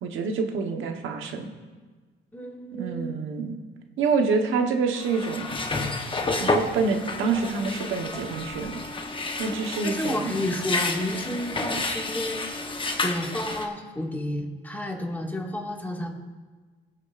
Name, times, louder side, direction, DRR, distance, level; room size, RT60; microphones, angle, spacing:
voice 1, 0.0-1.5 2.7-3.6 4.0-5.6 6.4-8.8 9.4-10.4 11.3-11.4, right 4 dB, 85° right, 4 dB, 1.2 m, -27 dB
voice 2, 2.3-3.1 9.8-12.5 13.0-16.1, left 1 dB, 10° left, 0 dB, 2.0 m, -31 dB
sound 1, 5.0-13.7, left 3 dB, 25° left, 1.0 m, -30 dB
21.0 x 7.2 x 2.5 m, 1.4 s
cardioid pair, 90°, 20 cm